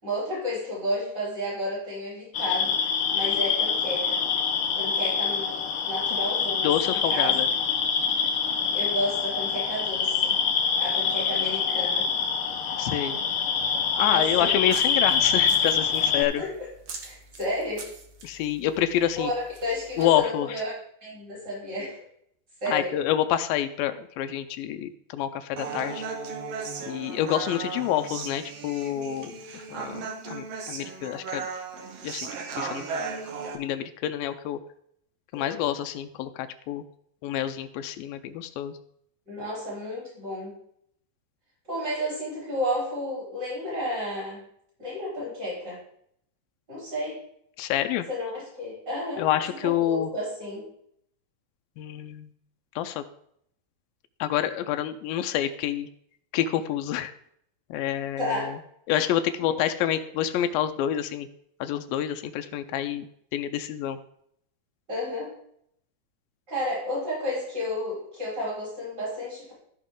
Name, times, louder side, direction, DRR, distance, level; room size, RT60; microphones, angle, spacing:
voice 1, 0.0-2.8 3.1-4.2 4.7-7.3 8.7-10.4 10.8-12.1 14.0-14.5 16.2-16.5 17.0-17.8 19.2-19.3 19.6-20.7 21.0-22.0 22.6-22.9 35.3-35.7 39.3-40.5 41.7-44.4 44.8-45.8 46.7-47.2 48.1-49.3 49.6-50.6 58.2-58.5 64.9-65.3 66.5-69.5, left 1 dB, 30° right, -7 dB, 5.1 m, -32 dB
Boreal Chorus Frog, 2.3-16.2, left 6 dB, 75° left, 1.3 m, -25 dB
voice 2, 6.6-7.5 12.8-13.2 14.0-16.4 18.2-19.3 20.0-20.6 22.7-26.1 26.9-31.5 32.0-32.3 32.6-32.8 33.5-34.6 35.3-36.8 37.2-38.8 47.6-48.1 49.2-50.1 51.8-52.3 52.8-53.0 54.2-55.9 56.3-57.1 57.7-58.6 58.9-61.3 61.6-63.1 63.3-64.0, left 11 dB, 90° left, 8 dB, 2.4 m, -28 dB
Grapefruit Squish, 14.2-20.2, right 4 dB, 80° right, 1.0 m, -46 dB
Human voice, 25.6-33.5, right 5 dB, 65° right, 1.7 m, -36 dB
15.0 x 5.9 x 3.7 m, 0.70 s
omnidirectional pair, 4.0 m